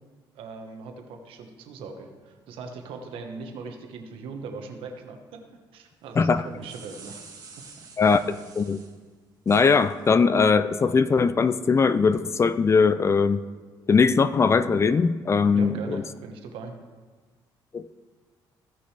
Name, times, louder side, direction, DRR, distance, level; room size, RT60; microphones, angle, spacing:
voice 1, 0.3-5.2 5.7-7.2 7.6-8.2 15.5-16.7, right 4 dB, 85° right, 4 dB, 1.2 m, -40 dB
voice 2, 6.2-6.5 8.0-8.8 9.5-13.4 13.9-16.0 17.7-17.9, left 5 dB, 30° left, 14 dB, 0.4 m, -20 dB
sound 1, 6.4-8.9 9.5-10.1, right 5 dB, 45° right, 1.8 m, -48 dB
16.0 x 6.0 x 3.3 m, 1.4 s
cardioid pair, 95°, 9 cm